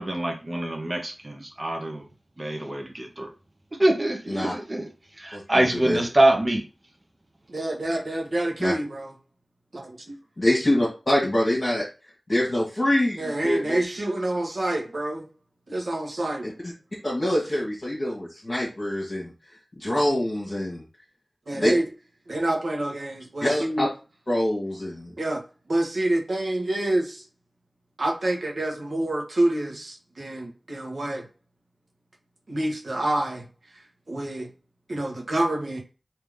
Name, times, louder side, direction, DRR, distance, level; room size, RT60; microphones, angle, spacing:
voice 1, 0.0-2.1 2.4-3.3 3.8-6.6, right 1 dB, 40° right, 1.1 m, -25 dB
voice 2, 7.5-9.1 9.7-10.2 13.2-15.2 15.7-16.5 21.5-21.8 22.3-23.9 25.2-25.4 25.7-27.2 28.0-31.3 32.5-33.5 34.1-34.5 34.9-35.8, right 1 dB, 75° right, 1.2 m, -27 dB
voice 3, 10.4-11.8 12.3-13.8 16.4-16.5 17.0-19.3 19.8-20.8 21.6-21.7 23.4-23.9 24.3-25.1, left 1 dB, 45° left, 1.3 m, -24 dB
3.5 x 2.9 x 3.5 m
wide cardioid pair, 55°, 0 cm